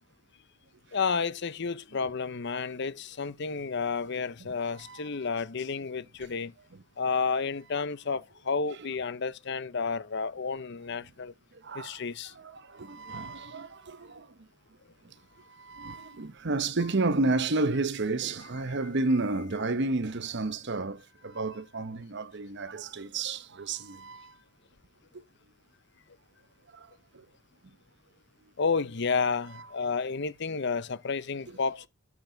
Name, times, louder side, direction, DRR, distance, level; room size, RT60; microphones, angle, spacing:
voice 1, 0.9-6.5 7.0-11.3 11.7-12.3 28.6-31.9, left 5 dB, 55° left, 0.7 m, -31 dB
voice 2, 11.6-12.0 12.3-14.3 15.5-24.3 26.7-26.9 27.1-27.2, right 3 dB, 55° right, 0.9 m, -31 dB
12.0 x 7.2 x 3.9 m
head